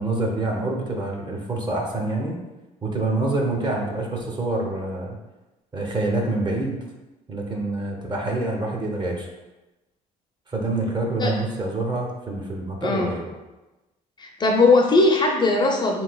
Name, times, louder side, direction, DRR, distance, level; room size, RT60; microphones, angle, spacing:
voice 1, 0.0-2.4 2.8-5.2 5.7-6.8 7.3-9.3 10.5-13.3, right 2 dB, 30° right, 0 dB, 0.6 m, -26 dB
voice 2, 14.2-16.0, left 3 dB, 30° left, 1 dB, 0.4 m, -19 dB
3.2 x 3.1 x 2.2 m, 1.1 s
cardioid pair, 100°, 16 cm